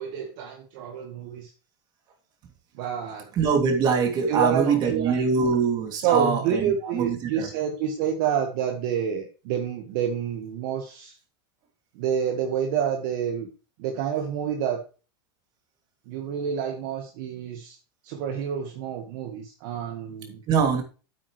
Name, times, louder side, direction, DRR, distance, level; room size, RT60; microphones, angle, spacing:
voice 1, 0.0-1.5 2.8-3.3 4.3-5.5 6.0-11.1 12.0-13.5 13.8-14.8 16.1-17.8 18.0-20.4, right 8 dB, 55° right, 4 dB, 1.7 m, -28 dB
voice 2, 3.3-7.5 20.5-20.8, right 5 dB, 35° right, 3 dB, 2.9 m, -23 dB
8.9 x 8.7 x 3.3 m, 0.34 s
supercardioid pair, 135°, 12 cm